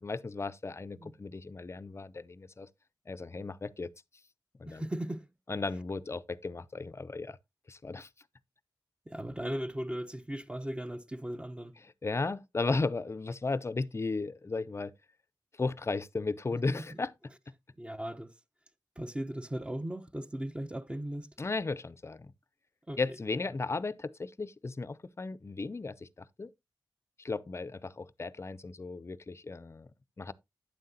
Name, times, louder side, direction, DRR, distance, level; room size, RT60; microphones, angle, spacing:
voice 1, 0.0-2.7 3.1-3.9 4.6-4.8 5.5-7.4 7.7-8.1 12.0-14.9 15.6-17.1 21.4-22.3 23.0-26.5 27.2-29.9 30.2-30.3, left 3 dB, 35° left, 0.5 m, -35 dB
voice 2, 4.6-5.3 9.1-11.7 16.7-17.0 17.8-18.3 19.0-21.3 22.9-23.2, right 1 dB, 15° right, 0.9 m, -37 dB
9.3 x 7.5 x 2.8 m
cardioid pair, 60°, 8 cm